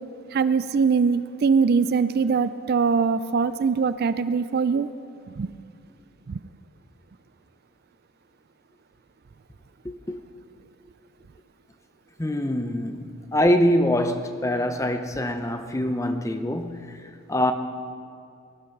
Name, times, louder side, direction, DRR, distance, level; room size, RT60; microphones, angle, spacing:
voice 1, 0.3-4.9 5.3-5.5 6.3-6.4, right 5 dB, 45° right, 0.3 m, -22 dB
voice 2, 9.8-10.2 12.2-16.9 17.3-17.5, left 1 dB, 15° left, 0.6 m, -24 dB
20.0 x 11.5 x 5.9 m
head